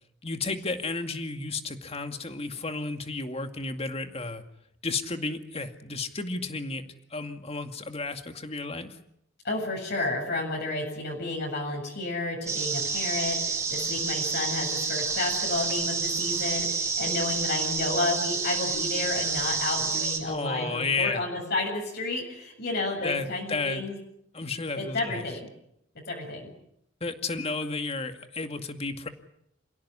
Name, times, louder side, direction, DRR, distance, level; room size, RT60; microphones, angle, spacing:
voice 1, 0.2-4.4 4.8-9.0 20.3-21.2 23.0-23.8 24.3-25.2 27.0-29.1, left 3 dB, 30° left, 7 dB, 2.2 m, -32 dB
voice 2, 9.4-23.9 24.7-25.5 26.1-26.5, left 2 dB, 55° left, 0 dB, 7.7 m, -31 dB
sound 1, 12.5-20.2, right 4 dB, 15° right, 6.0 m, -29 dB
28.0 x 17.5 x 9.8 m, 0.74 s
head